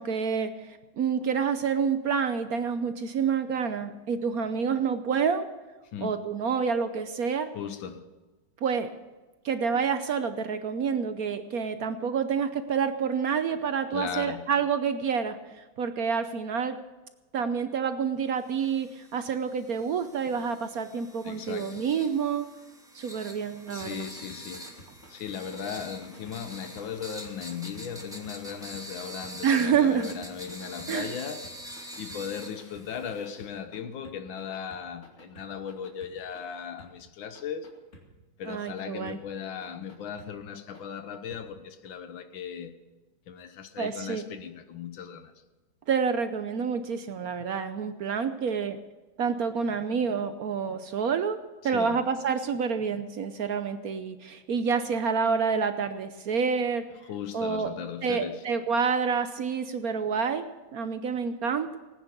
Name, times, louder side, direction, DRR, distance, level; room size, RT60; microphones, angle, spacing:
voice 1, 0.0-5.5 6.0-7.5 8.6-8.9 9.4-16.8 17.3-22.5 22.9-24.1 29.4-30.2 30.9-31.1 38.5-39.2 43.8-44.2 45.9-48.8 49.2-51.4 51.6-56.9 57.3-61.8, right 6 dB, 60° right, 1.0 m, -28 dB
voice 2, 7.5-8.1 13.9-14.5 21.2-21.9 23.7-24.7 25.1-31.5 32.0-37.7 38.4-42.7 43.3-45.3 51.6-52.1 57.0-58.5, left 7 dB, 80° left, 1.7 m, -37 dB
sound 1, 18.6-33.5, right 1 dB, ahead, 1.7 m, -45 dB
sound 2, 23.6-31.2 31.4-33.8 34.0-36.4 36.8-36.9 37.3-38.0 38.5-39.2 39.6-40.3 40.7-40.8 41.3-41.4 41.9-42.0, left 1 dB, 40° left, 2.8 m, -51 dB
19.0 x 9.8 x 6.7 m
omnidirectional pair, 2.1 m